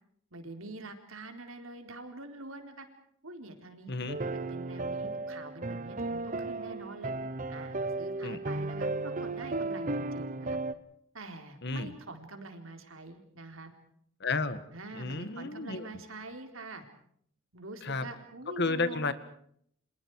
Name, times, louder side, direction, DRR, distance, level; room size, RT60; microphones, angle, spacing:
voice 1, 0.3-2.9 3.2-3.9 4.2-7.1 7.5-10.6 11.1-13.7 14.7-16.8 17.5-19.1, right 2 dB, 80° right, 6 dB, 4.1 m, -45 dB
voice 2, 3.9-4.2 8.2-8.4 11.6-11.9 14.2-14.6 14.9-15.9 17.8-18.1 18.6-19.1, left 3 dB, 55° left, 12 dB, 1.9 m, -32 dB
sound 1, 4.1-10.7, right 2 dB, 40° right, 1.1 m, -35 dB
30.0 x 26.5 x 4.9 m, 0.66 s
head